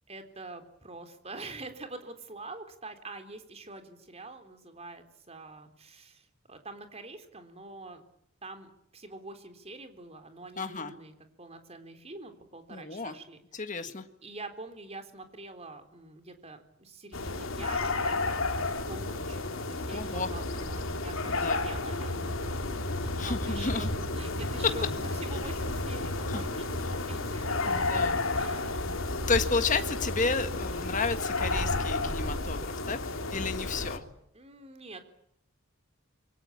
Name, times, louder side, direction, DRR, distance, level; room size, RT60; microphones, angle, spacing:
voice 1, 0.1-8.0 8.4-13.4 14.2-18.4 18.9-27.8 28.3-28.9 34.3-35.0, right 2 dB, 30° right, 8 dB, 3.7 m, -45 dB
voice 2, 10.6-10.9 12.7-13.1 13.5-14.0 19.9-20.3 21.3-21.6 23.2-23.9 26.3-26.4 27.7-28.2 28.5-28.7 29.3-34.0, left 4 dB, 40° left, 8 dB, 1.8 m, -32 dB
sound 1, 17.1-34.0, left 2 dB, 80° left, 3.2 m, -32 dB
27.5 x 24.0 x 8.7 m, 0.75 s
head